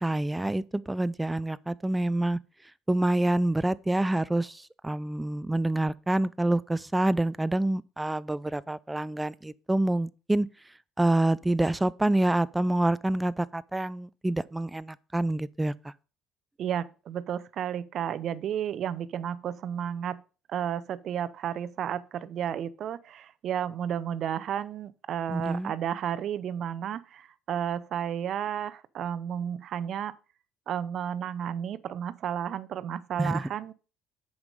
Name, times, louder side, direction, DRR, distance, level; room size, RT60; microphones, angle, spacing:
voice 1, 0.0-2.4 2.9-10.5 11.0-15.9 25.3-25.7 33.2-33.4, right 1 dB, 10° right, 0.4 m, -27 dB
voice 2, 16.6-20.2 20.5-30.1 30.7-33.7, right 9 dB, 55° right, 0.6 m, -32 dB
7.9 x 5.4 x 5.2 m
supercardioid pair, 95°, 0 cm